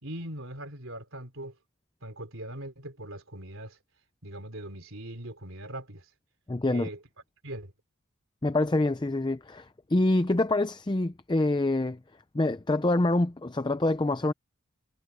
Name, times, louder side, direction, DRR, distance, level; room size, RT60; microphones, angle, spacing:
voice 1, 0.0-1.6 2.0-3.8 4.2-6.1 6.7-7.0 7.4-7.7, right 1 dB, 70° right, 3.7 m, -40 dB
voice 2, 6.5-6.9 8.4-12.0 12.3-14.3, left 2 dB, 20° left, 0.5 m, -26 dB
head